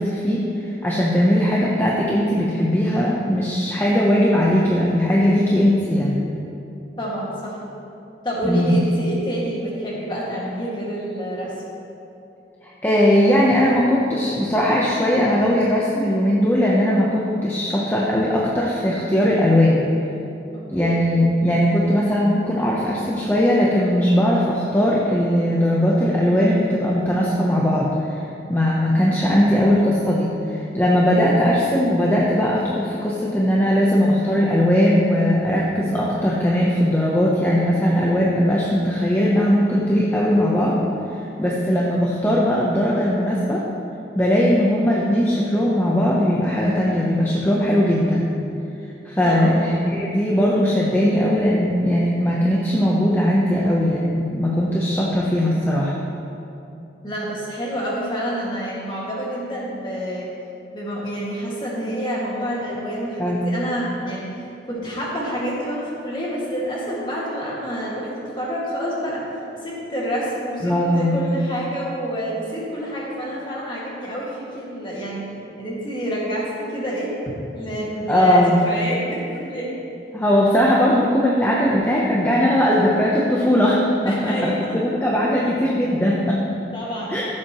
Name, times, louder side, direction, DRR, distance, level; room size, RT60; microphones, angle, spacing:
voice 1, 0.0-6.2 8.4-8.7 12.6-19.8 20.7-28.2 28.5-40.8 41.1-43.6 44.1-48.3 49.0-56.0 63.2-63.4 70.6-71.2 78.1-78.6 80.1-86.4 87.1-87.2, equal, 10° left, -5 dB, 0.8 m, -19 dB
voice 2, 7.0-7.6 8.2-11.5 20.5-20.9 49.2-49.5 57.0-60.3 60.7-69.3 69.6-75.3 75.6-77.1 77.5-79.8 84.1-84.8 86.7-87.2, equal, 25° left, -5 dB, 2.0 m, -28 dB
15.5 x 7.5 x 3.1 m, 2.8 s
head